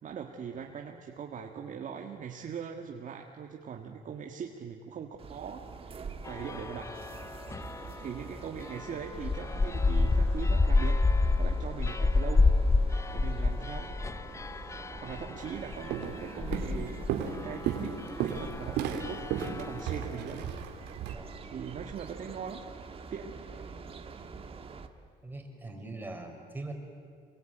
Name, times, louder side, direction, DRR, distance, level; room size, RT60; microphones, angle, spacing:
voice 1, 0.0-7.0 8.0-11.0 11.4-12.4 12.7-13.9 14.5-20.5 20.8-20.9 21.5-22.6 23.1-23.4, right 7 dB, 50° right, 2 dB, 1.9 m, -41 dB
sound 1, 5.2-24.9, right 5 dB, 35° right, 1.7 m, -46 dB
sound 2, 6.3-8.1 8.6-20.1, left 3 dB, 15° left, 0.6 m, -29 dB
Walk footsteps, 15.4-15.6 15.9-16.2 16.5-21.1, right 9 dB, 90° right, 2.9 m, -34 dB
voice 2, 23.6-23.9 25.2-26.7, right 2 dB, 10° right, 3 dB, 4.9 m, -43 dB
26.5 x 23.0 x 9.2 m, 2.1 s
cardioid pair, 110°, 17 cm